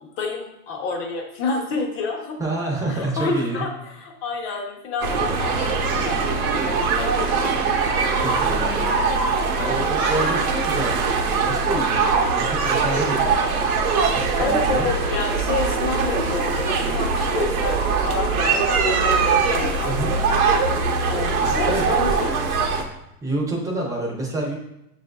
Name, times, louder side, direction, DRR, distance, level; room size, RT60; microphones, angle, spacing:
voice 1, 0.0-2.4 2.9-7.5 9.6-10.0 14.0-20.2 21.1-22.3, left 3 dB, 30° left, 1 dB, 0.7 m, -29 dB
voice 2, 2.4-3.6 8.1-9.0 9.6-13.7 14.0-14.9 19.8-20.2 21.4-22.0 23.2-24.6, right 1 dB, 10° right, -1 dB, 0.6 m, -28 dB
sound 1, 5.0-22.8, right 4 dB, 75° right, 0.8 m, -22 dB
6.5 x 2.5 x 2.2 m, 0.85 s
hypercardioid pair, 125°, 44 cm